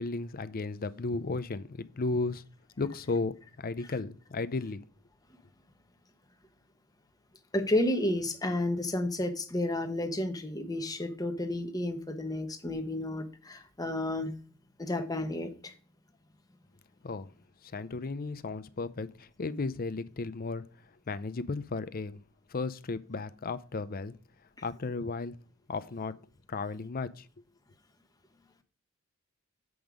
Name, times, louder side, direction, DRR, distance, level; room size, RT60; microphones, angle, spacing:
voice 1, 0.0-2.4 2.8-4.8 17.0-17.3 17.6-20.6 21.1-22.2 22.5-24.2 24.6-25.4 25.7-26.2 26.5-27.3, left 3 dB, 45° left, 0.6 m, -34 dB
voice 2, 7.5-14.3 14.8-15.7, left 1 dB, 20° left, 1.1 m, -31 dB
7.9 x 5.4 x 5.0 m
head